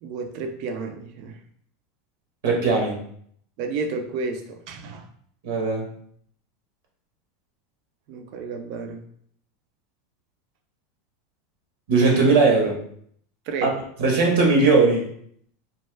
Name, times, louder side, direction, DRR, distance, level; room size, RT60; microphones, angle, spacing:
voice 1, 0.0-1.4 3.6-5.1 8.1-9.0 13.5-13.7, right 4 dB, 60° right, 5 dB, 0.4 m, -31 dB
voice 2, 2.4-3.0 5.4-5.9 11.9-12.8 13.6-13.7 14.0-15.1, right 3 dB, 75° right, -1 dB, 0.8 m, -18 dB
2.2 x 2.1 x 3.1 m, 0.64 s
hypercardioid pair, 110°, 0 cm